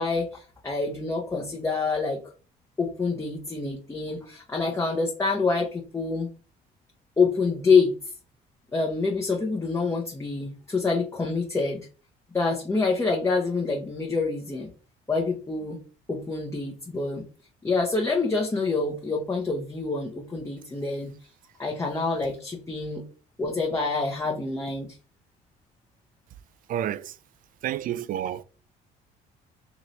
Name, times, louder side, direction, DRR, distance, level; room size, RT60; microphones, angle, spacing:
voice 1, 0.0-2.2 2.8-6.3 7.2-7.9 8.7-11.8 12.3-14.7 15.1-15.8 16.1-17.3 17.6-21.1 21.6-23.0 23.4-25.0, left 4 dB, 15° left, 0.8 m, -26 dB
voice 2, 26.7-27.1 27.6-28.4, right 11 dB, 55° right, 0.4 m, -29 dB
3.1 x 2.9 x 4.0 m
cardioid pair, 110°, 17 cm